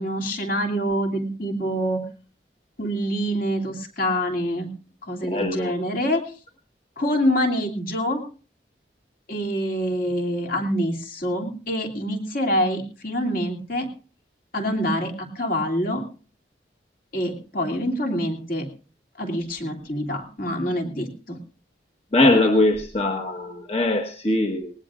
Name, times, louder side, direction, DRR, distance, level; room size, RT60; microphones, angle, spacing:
voice 1, 0.0-2.0 2.8-4.7 5.0-6.2 7.0-8.2 9.3-13.9 14.5-16.0 17.1-18.7 19.2-21.4, equal, 50° left, 3 dB, 2.8 m, -26 dB
voice 2, 5.3-5.7 22.1-24.7, left 2 dB, 35° left, 3 dB, 1.3 m, -21 dB
19.0 x 19.0 x 2.5 m, 0.38 s
head